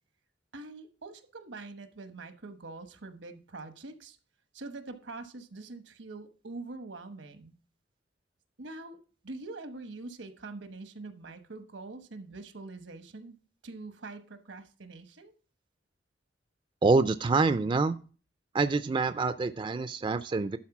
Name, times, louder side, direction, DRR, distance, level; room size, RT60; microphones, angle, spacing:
voice 1, 0.5-4.2 4.5-7.5 8.6-9.0 9.2-13.4 13.6-15.3, right 3 dB, 85° right, 1.1 m, -44 dB
voice 2, 16.8-18.0 18.5-20.6, right 3 dB, 25° right, 0.3 m, -26 dB
11.5 x 4.2 x 5.9 m
head